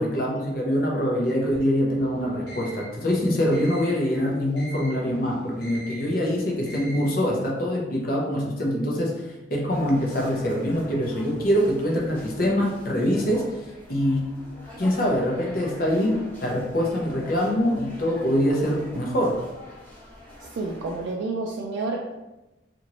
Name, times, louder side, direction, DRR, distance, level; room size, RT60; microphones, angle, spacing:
voice 1, 0.0-14.3 14.8-19.4, equal, 50° left, -1 dB, 0.6 m, -24 dB
sound 1, 1.9-7.5, right 1 dB, 65° left, 1.1 m, -41 dB
sound 2, 9.7-21.1, left 1 dB, 10° left, 0.8 m, -45 dB
voice 2, 20.4-22.1, right 3 dB, 80° right, 0 dB, 0.3 m, -30 dB
2.8 x 2.6 x 2.9 m, 1.0 s
head